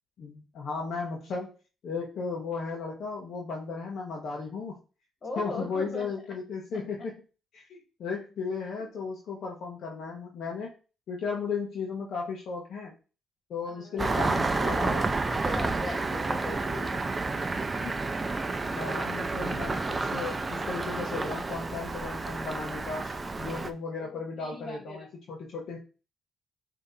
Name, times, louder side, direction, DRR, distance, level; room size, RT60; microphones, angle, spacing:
voice 1, 0.2-1.5 1.8-4.8 5.4-7.2 7.5-10.7 11.1-12.9 13.5-15.1 17.8-17.9 18.8-25.8, left 5 dB, 70° left, -1 dB, 0.9 m, -35 dB
voice 2, 5.2-6.1 6.7-7.1 13.7-17.0 24.0-25.1, left 2 dB, 40° left, 1 dB, 2.0 m, -40 dB
Engine starting, 14.0-23.7, right 3 dB, 25° right, 0.5 m, -30 dB
5.5 x 2.8 x 2.6 m, 0.34 s
cardioid pair, 90°, 0 cm